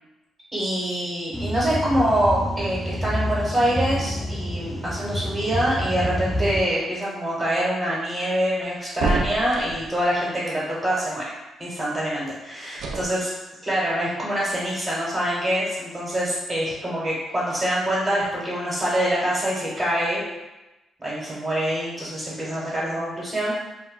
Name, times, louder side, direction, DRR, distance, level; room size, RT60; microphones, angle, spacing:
voice 1, 0.5-11.3 11.6-13.3 13.6-20.2 21.0-23.5, equal, 30° right, -7 dB, 0.9 m, -25 dB
sound 1, 1.3-6.6, equal, 15° left, 0.4 m, -28 dB
sound 2, 9.0-9.9 12.7-13.1, right 3 dB, 75° right, 0.3 m, -26 dB
2.2 x 2.1 x 3.7 m, 1.1 s
cardioid pair, 75°, 0 cm